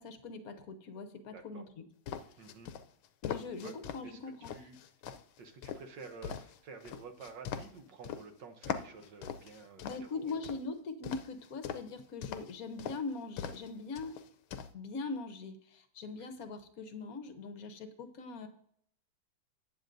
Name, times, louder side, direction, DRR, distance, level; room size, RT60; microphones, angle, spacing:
voice 1, 0.0-1.8 3.2-4.5 9.8-14.2 14.7-18.5, left 4 dB, 55° left, 7 dB, 1.1 m, -41 dB
voice 2, 1.3-1.6 2.4-2.7 3.6-3.7 4.0-4.8 5.4-10.3 16.2-16.3, right 4 dB, 65° right, 7 dB, 1.5 m, -50 dB
sound 1, 2.1-4.0 4.4-8.2 8.6-10.6 11.0-11.9 12.2-12.5 12.8-13.0 13.4-13.7 14.0-14.7, left 8 dB, 75° left, 1.4 m, -41 dB
14.0 x 9.1 x 2.6 m, 0.66 s
omnidirectional pair, 2.3 m